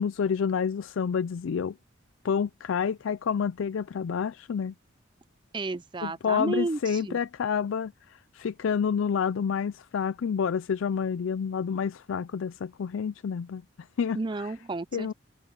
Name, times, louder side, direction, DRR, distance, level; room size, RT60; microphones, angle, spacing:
voice 1, 0.0-1.8 2.2-4.7 6.0-13.6 14.0-14.2 14.9-15.1, left 6 dB, 80° left, 0.4 m, -28 dB
voice 2, 5.5-7.2 14.1-15.1, right 3 dB, 25° right, 0.5 m, -32 dB
head